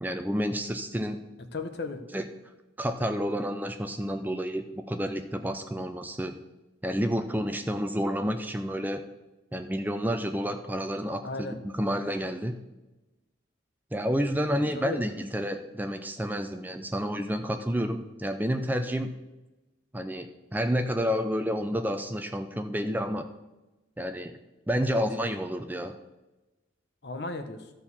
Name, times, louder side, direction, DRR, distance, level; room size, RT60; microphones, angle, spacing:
voice 1, 0.0-1.2 2.1-2.2 2.8-6.4 6.8-9.0 9.5-12.5 13.9-19.1 19.9-23.3 24.0-24.4 24.7-26.0, equal, 10° right, 7 dB, 0.4 m, -30 dB
voice 2, 1.5-2.0 11.2-11.6 14.5-15.0 24.9-25.0 27.0-27.7, left 2 dB, 60° left, 7 dB, 1.0 m, -35 dB
13.5 x 4.4 x 7.0 m, 1.1 s
head